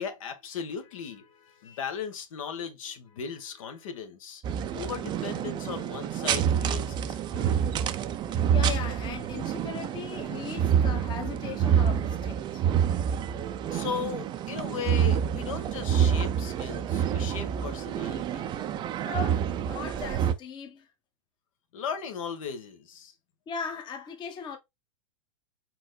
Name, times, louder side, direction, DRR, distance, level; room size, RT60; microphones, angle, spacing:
voice 1, 0.0-4.4 4.7-7.7 8.3-8.4 13.7-18.5 21.7-23.1, left 7 dB, 70° left, 1.3 m, -37 dB
sound 1, 4.4-20.3, right 8 dB, 25° right, 0.5 m, -27 dB
voice 2, 8.5-12.6 19.0-20.9 23.5-24.6, left 6 dB, 25° left, 1.0 m, -38 dB
4.5 x 4.3 x 2.2 m
hypercardioid pair, 125°, 18 cm